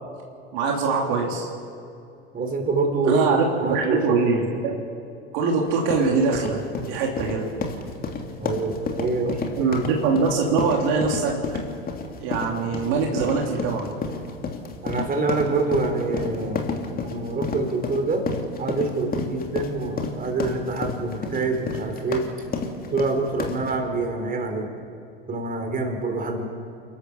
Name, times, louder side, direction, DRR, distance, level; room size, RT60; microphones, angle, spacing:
voice 1, 0.5-1.5 3.0-4.8 5.3-7.5 9.6-11.4 12.2-13.9, right 4 dB, 60° right, 0 dB, 3.3 m, -23 dB
voice 2, 2.3-4.2 8.4-9.7 14.8-18.3 18.6-22.3 22.9-24.7 25.3-26.5, right 3 dB, 25° right, 4 dB, 4.2 m, -26 dB
sound 1, 5.7-23.7, left 4 dB, 30° left, 2.8 m, -31 dB
29.5 x 12.5 x 7.3 m, 2.6 s
hypercardioid pair, 80°, 32 cm